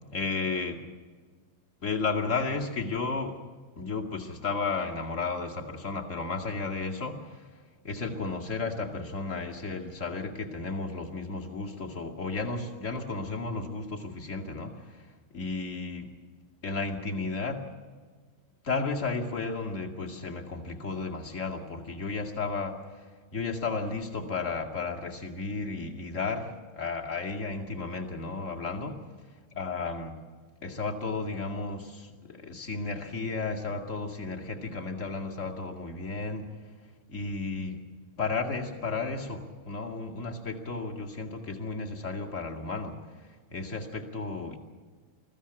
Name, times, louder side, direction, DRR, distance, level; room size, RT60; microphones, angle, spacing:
voice 1, 0.1-0.8 1.8-3.4 3.8-7.5 7.8-15.1 15.3-16.1 16.6-17.7 18.6-29.0 29.6-30.2 30.6-36.5 37.1-37.8 38.2-44.6, left 3 dB, 35° left, 1 dB, 2.5 m, -33 dB
22.0 x 15.0 x 10.0 m, 1.5 s
omnidirectional pair, 2.3 m